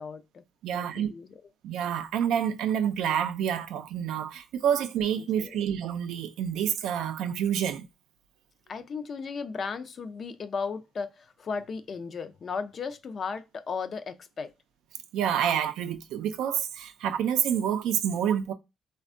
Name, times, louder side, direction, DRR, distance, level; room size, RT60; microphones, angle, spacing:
voice 1, 0.0-0.4 0.7-1.4 5.2-5.6 8.7-14.5, left 5 dB, 50° left, 0.4 m, -36 dB
voice 2, 0.6-1.1 1.6-7.9 15.1-18.5, right 9 dB, 85° right, 0.4 m, -28 dB
3.3 x 2.2 x 2.5 m
cardioid pair, 90°, 0 cm